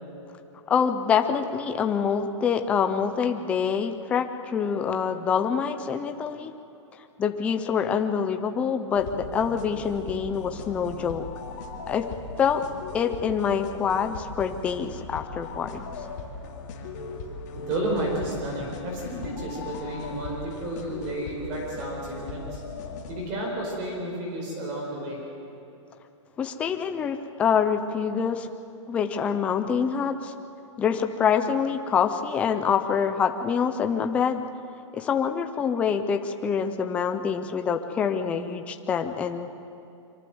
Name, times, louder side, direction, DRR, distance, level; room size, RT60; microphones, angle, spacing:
voice 1, 0.7-6.5 7.2-11.2 11.9-12.0 12.4-12.6 12.9-15.8 26.4-28.5 28.9-30.3 30.8-34.4 34.9-39.5, left 7 dB, 10° left, 7 dB, 0.5 m, -26 dB
sound 1, 8.9-23.2, left 4 dB, 35° left, 2.6 m, -39 dB
voice 2, 17.5-22.6 23.1-25.2, right 1 dB, 30° right, -1 dB, 4.8 m, -32 dB
24.5 x 23.5 x 7.9 m, 2.7 s
hypercardioid pair, 175°, 16 cm